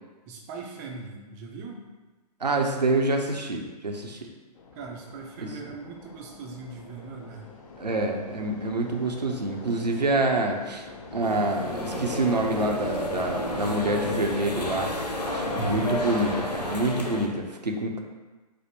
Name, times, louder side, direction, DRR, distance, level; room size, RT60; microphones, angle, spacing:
voice 1, 0.3-1.9 4.7-7.5 15.7-16.1, right 4 dB, 30° right, 0 dB, 0.5 m, -40 dB
voice 2, 2.4-4.3 5.4-5.5 7.8-10.9 11.1-14.9 15.3-18.0, right 2 dB, 90° right, 2 dB, 0.6 m, -27 dB
sound 1, 4.5-14.1, left 3 dB, 55° left, 0.8 m, -44 dB
sound 2, 11.2-17.3, left 1 dB, 80° left, 0.9 m, -31 dB
5.1 x 2.1 x 4.4 m, 1.2 s
figure-of-eight pair, 115°, 21 cm